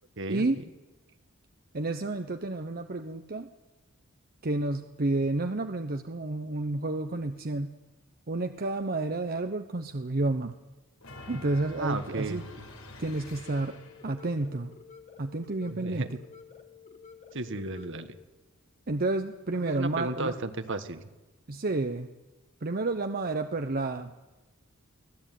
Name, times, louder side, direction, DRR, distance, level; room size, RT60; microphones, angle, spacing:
voice 1, 0.3-0.6 1.7-3.5 4.4-7.7 8.3-10.6 11.3-12.4 13.0-13.8 14.0-14.7 15.2-16.1 18.9-20.3 21.5-22.1 22.6-24.1, right 2 dB, 45° right, 7 dB, 0.9 m, -30 dB
sound 1, 11.0-14.2, left 2 dB, 85° left, 4.6 m, -47 dB
voice 2, 11.8-12.7 15.7-16.1 17.3-18.2 19.6-21.1, right 2 dB, 60° right, 10 dB, 1.6 m, -34 dB
sound 2, 13.2-18.2, left 6 dB, 35° left, 1.8 m, -51 dB
24.5 x 17.0 x 9.3 m, 1.1 s
head